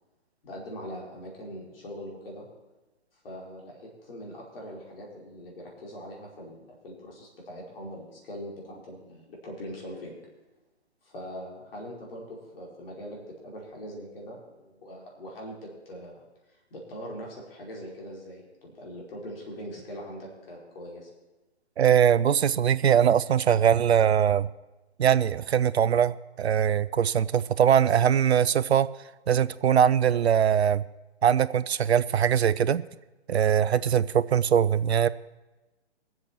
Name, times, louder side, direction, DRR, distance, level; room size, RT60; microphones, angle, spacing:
voice 1, 0.4-2.5 3.2-10.2 11.0-16.2 16.5-21.1, equal, 55° left, -2 dB, 4.9 m, -42 dB
voice 2, 21.8-24.5 25.0-28.9 29.3-30.8 31.2-32.8 33.3-35.1, right 8 dB, 65° right, 16 dB, 0.7 m, -22 dB
23.5 x 7.9 x 4.5 m, 1.1 s
figure-of-eight pair, 140°, 34 cm